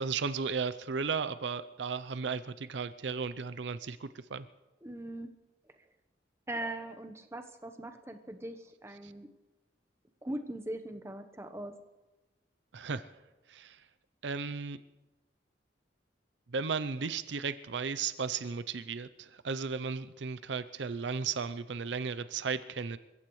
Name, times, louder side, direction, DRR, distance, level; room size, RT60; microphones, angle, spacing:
voice 1, 0.0-4.5 9.0-9.1 12.7-13.1 13.5-13.8 14.2-14.8 16.5-23.0, right 5 dB, 75° right, 13 dB, 0.6 m, -35 dB
voice 2, 4.8-5.3 6.5-9.3 10.2-11.7, right 1 dB, 15° right, 7 dB, 1.0 m, -40 dB
28.5 x 15.5 x 3.2 m, 1.1 s
head